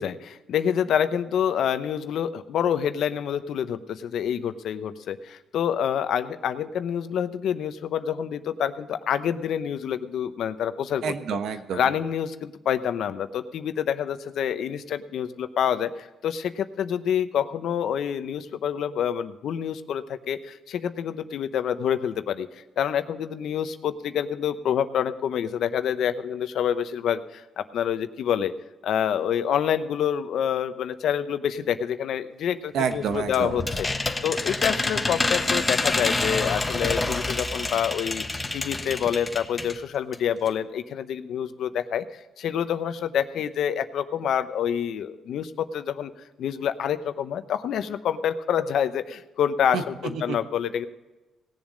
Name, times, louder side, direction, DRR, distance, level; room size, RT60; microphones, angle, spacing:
voice 1, 0.0-11.0 11.7-28.5 28.8-38.2 38.5-42.0 42.4-46.1 46.4-50.9, left 9 dB, 70° left, 11 dB, 0.8 m, -27 dB
voice 2, 11.0-11.8 32.7-33.6 49.7-49.8 50.1-50.4, right 6 dB, 75° right, 8 dB, 1.2 m, -28 dB
sound 1, 32.9-39.8 40.1-40.2 40.5-40.6, left 2 dB, 20° left, 1.2 m, -27 dB
18.5 x 7.3 x 5.2 m, 1.1 s
cardioid pair, 90°, 0 cm